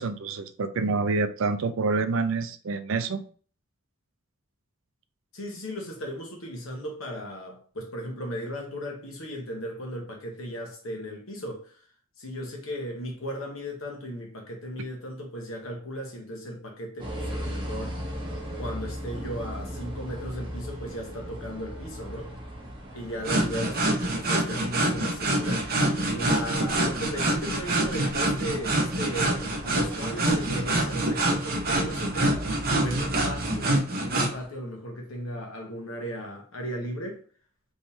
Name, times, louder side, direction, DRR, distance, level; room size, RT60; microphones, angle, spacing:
voice 1, 0.0-3.2, right 3 dB, 70° right, 0.4 m, -27 dB
voice 2, 5.3-11.7 12.2-17.9 18.6-22.3 22.9-25.8 26.1-32.5 32.7-33.7 34.0-37.2, equal, 85° left, 1.2 m, -36 dB
sound 1, 17.0-33.6, equal, 25° right, 1.1 m, -39 dB
sound 2, 23.2-34.3, right 1 dB, 50° right, 0.9 m, -26 dB
3.6 x 3.1 x 2.8 m
head